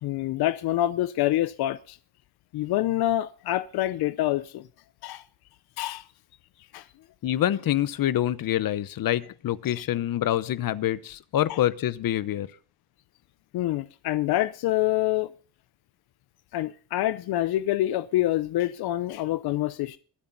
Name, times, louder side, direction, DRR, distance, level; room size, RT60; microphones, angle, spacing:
voice 1, 0.0-2.0 2.5-4.6 5.0-5.2 5.8-6.0 6.7-6.8 9.7-9.8 11.5-11.6 13.5-15.3 16.5-20.0, left 14 dB, 85° left, 0.7 m, -26 dB
voice 2, 7.2-12.5, left 12 dB, 65° left, 0.9 m, -26 dB
23.0 x 8.6 x 4.0 m
cardioid pair, 110°, 37 cm